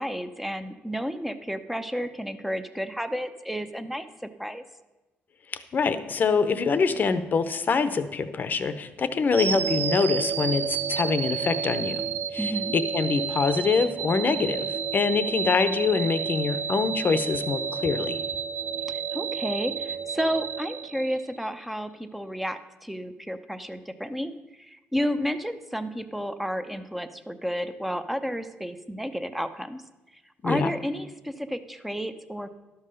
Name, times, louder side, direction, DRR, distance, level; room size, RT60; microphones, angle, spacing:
voice 1, 0.0-4.6 12.4-12.7 18.9-24.3 24.6-29.8 30.4-32.5, equal, 5° right, 9 dB, 0.7 m, -31 dB
voice 2, 5.5-12.0 12.3-18.2 30.4-30.7, left 5 dB, 40° left, 12 dB, 0.8 m, -25 dB
sound 1, 9.3-21.4, right 7 dB, 50° right, 0.5 m, -30 dB
12.0 x 5.6 x 6.6 m, 1.1 s
cardioid pair, 95°, 5 cm